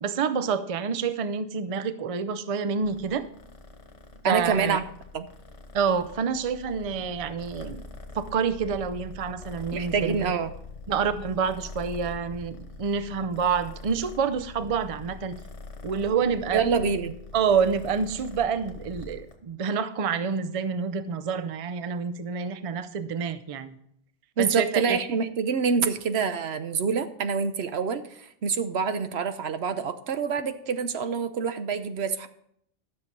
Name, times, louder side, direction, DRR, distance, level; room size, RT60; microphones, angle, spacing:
voice 1, 0.0-3.2 4.2-4.8 5.7-7.9 8.1-10.3 10.9-15.4 15.8-16.7 17.3-23.8 24.4-25.0, right 6 dB, 40° right, 13 dB, 0.5 m, -28 dB
Purr, 2.8-19.4, left 3 dB, 70° left, 1.6 m, -44 dB
voice 2, 4.2-4.8 5.1-5.3 9.7-10.5 16.5-17.1 24.4-32.3, right 6 dB, 65° right, 10 dB, 1.0 m, -26 dB
13.0 x 6.8 x 5.3 m, 0.70 s
omnidirectional pair, 1.2 m